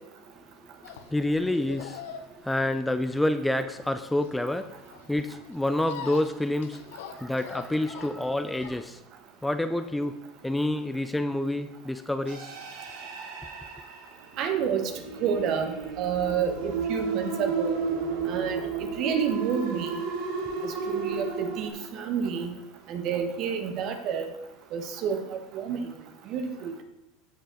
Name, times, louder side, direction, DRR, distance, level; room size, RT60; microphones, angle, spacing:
sound 1, 0.8-9.0, left 8 dB, 80° left, 0.9 m, -44 dB
voice 1, 0.8-2.0 2.4-4.7 5.1-6.8 7.2-9.0 9.4-10.2 10.4-12.5, left 1 dB, 5° left, 10 dB, 0.5 m, -28 dB
sound 2, 12.3-21.7, right 5 dB, 75° right, 1.9 m, -33 dB
voice 2, 14.4-14.9 15.2-17.8 18.3-20.0 20.6-22.5 22.9-24.3 24.7-25.8 26.3-26.8, right 7 dB, 55° right, 7 dB, 1.4 m, -29 dB
15.5 x 5.4 x 3.8 m, 0.92 s
hypercardioid pair, 100°, 0 cm